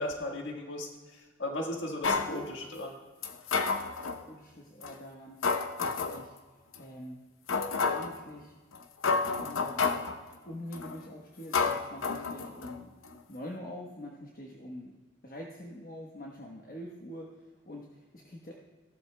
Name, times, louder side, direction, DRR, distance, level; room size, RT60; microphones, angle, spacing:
voice 1, 0.0-3.0, left 1 dB, 65° left, 0 dB, 1.5 m, -36 dB
sound 1, 2.0-2.3 3.2-4.2 4.8-4.9 5.4-6.2 6.7-6.8 7.5-8.2 8.7-8.8 9.0-10.2 10.7-11.0 11.5-12.8 13.0-13.1, left 4 dB, 85° left, 0.8 m, -30 dB
voice 2, 4.0-5.4 5.8-7.2 7.8-8.5 9.4-9.9 10.4-13.0 13.3-15.0 15.2-18.5, left 1 dB, 45° left, -1 dB, 1.1 m, -45 dB
17.0 x 12.5 x 2.2 m, 1.3 s
head